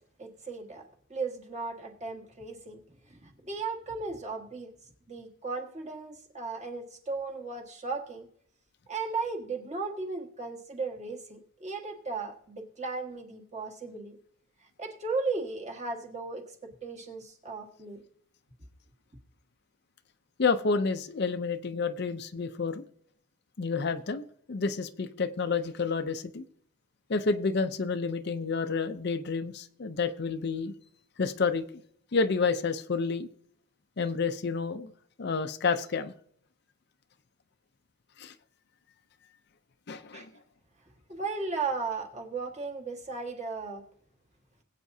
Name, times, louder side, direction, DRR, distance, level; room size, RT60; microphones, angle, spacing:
voice 1, 0.2-2.8 3.1-4.7 5.1-8.3 8.9-14.2 14.8-18.0 40.1-40.2 41.1-43.8, right 4 dB, 30° right, 1 dB, 1.6 m, -36 dB
voice 2, 20.4-22.8 23.6-26.4 27.1-30.7 31.2-31.6 32.1-33.3 34.0-34.9 35.2-36.1 38.2-38.3 39.9-40.3, left 4 dB, 50° left, 9 dB, 0.5 m, -29 dB
21.5 x 8.3 x 2.7 m, 0.65 s
head